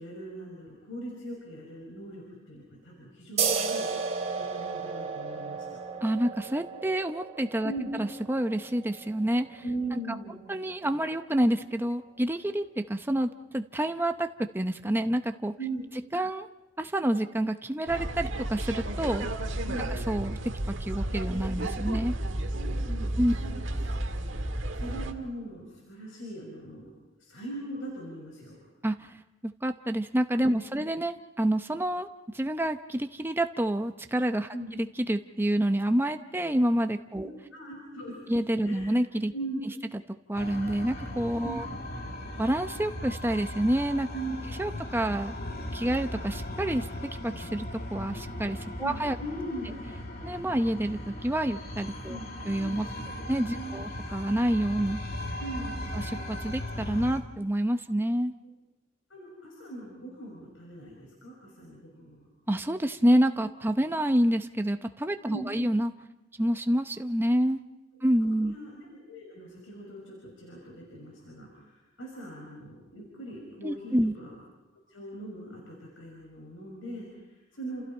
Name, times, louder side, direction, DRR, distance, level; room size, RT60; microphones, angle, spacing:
voice 1, 0.0-4.1 4.3-5.8 7.6-8.0 9.6-10.4 15.6-15.9 19.7-19.8 22.5-23.6 24.0-26.9 27.2-28.6 30.5-30.6 34.5-34.7 37.1-38.2 38.6-38.9 39.3-39.7 41.4-41.6 44.1-44.5 48.8-49.7 52.1-52.4 52.9-53.2 53.5-53.8 55.4-55.9 59.1-62.3 65.3-65.5 67.9-68.1 68.4-74.3 74.9-77.8, right 1 dB, 80° left, -2 dB, 6.1 m, -40 dB
sound 1, 3.4-10.5, right 5 dB, 35° right, 3.4 m, -34 dB
voice 2, 6.0-9.6 9.9-10.0 10.5-15.5 16.1-16.5 16.8-19.3 19.9-20.4 20.7-22.1 23.2-23.3 28.8-29.1 29.4-32.1 32.3-37.3 38.3-39.3 40.3-41.7 42.4-44.1 44.6-45.4 45.7-46.9 47.2-49.2 50.2-52.2 52.5-52.9 53.3-55.0 55.9-58.3 62.5-65.9 66.4-67.6 68.0-68.5 73.6-74.1, right 1 dB, 10° right, 7 dB, 0.7 m, -28 dB
sound 2, 17.9-25.1, right 1 dB, 70° right, 1.7 m, -32 dB
sound 3, 40.3-57.2, left 1 dB, 50° left, 2.6 m, -38 dB
30.0 x 28.0 x 4.4 m, 1.0 s
head